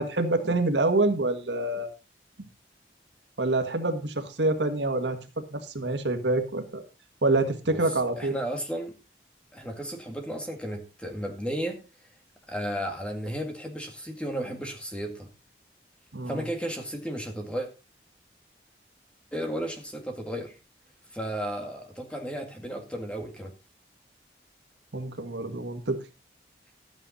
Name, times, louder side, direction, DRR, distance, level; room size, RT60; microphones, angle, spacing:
voice 1, 0.0-1.9 3.4-6.8 7.2-8.4 16.1-16.4 24.9-26.0, right 2 dB, 85° right, 1.6 m, -26 dB
voice 2, 8.2-9.0 9.5-11.8 12.5-15.3 16.3-17.7 19.3-20.6 21.1-23.5, equal, 5° left, 2.1 m, -34 dB
13.0 x 9.0 x 4.1 m
head